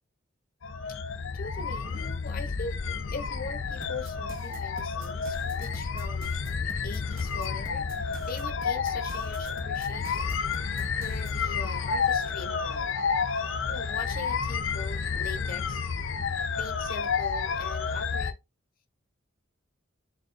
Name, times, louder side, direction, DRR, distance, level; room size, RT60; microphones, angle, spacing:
sound 1, 0.6-18.3, left 5 dB, 70° left, 0.6 m, -30 dB
voice 1, 1.3-6.4 6.8-10.5 10.9-13.0 13.7-15.9 16.6-18.3, left 4 dB, 45° left, 0.9 m, -41 dB
sound 2, 3.8-11.4, right 2 dB, 45° right, 1.0 m, -47 dB
4.1 x 3.7 x 2.7 m
head